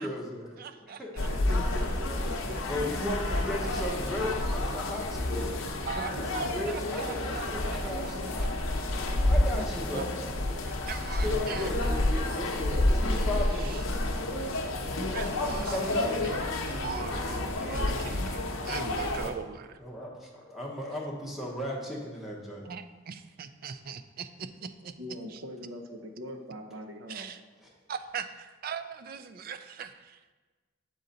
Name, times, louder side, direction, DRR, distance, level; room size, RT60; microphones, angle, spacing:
voice 1, 0.0-1.1 2.7-5.7 6.1-8.2 9.2-10.1 11.2-13.9 14.6-15.1 15.7-16.2 19.8-22.7, left 1 dB, ahead, -2 dB, 0.9 m, -36 dB
voice 2, 0.6-1.3 5.8-8.5 9.9-10.0 10.7-12.6 13.3-13.8 15.1-19.8 22.6-24.9 25.3-25.4 27.1-27.4 27.9-30.3, right 6 dB, 45° right, 10 dB, 0.3 m, -41 dB
sound 1, 1.2-19.3, left 1 dB, 80° left, 0.7 m, -30 dB
voice 3, 1.3-3.4 6.0-8.5 9.5-10.0 25.0-27.3, equal, 65° right, 5 dB, 0.7 m, -42 dB
sound 2, 6.9-13.0, left 5 dB, 55° left, 0.3 m, -48 dB
7.7 x 3.9 x 4.0 m, 1.3 s
head